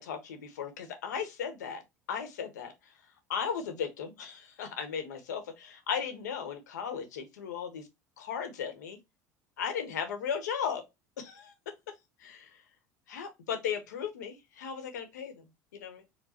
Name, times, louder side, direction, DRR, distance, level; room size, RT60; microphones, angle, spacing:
voice 1, 0.0-1.8 2.1-2.7 3.3-7.9 8.2-9.0 9.6-10.8 11.2-11.5 12.2-12.6 13.1-15.4 15.7-16.0, left 7 dB, 75° left, 1.0 m, -36 dB
4.5 x 2.2 x 4.2 m
figure-of-eight pair, 70°, 9 cm